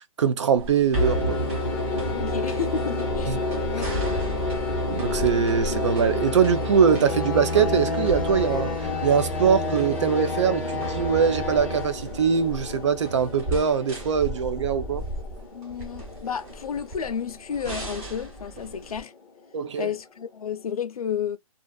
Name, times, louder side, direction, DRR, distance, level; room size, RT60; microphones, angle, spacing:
voice 1, 0.2-1.4 3.3-3.4 4.9-8.7 9.0-15.0 19.5-19.9, right 7 dB, 55° right, 0.5 m, -22 dB
sound 1, 0.6-19.0, right 1 dB, 25° right, 1.0 m, -35 dB
sound 2, 0.9-19.2, left 2 dB, 5° left, 0.6 m, -30 dB
voice 2, 2.1-3.4 3.7-4.4 15.5-19.1 19.8-21.4, left 7 dB, 90° left, 0.6 m, -32 dB
2.5 x 2.3 x 2.2 m
hypercardioid pair, 170°, 18 cm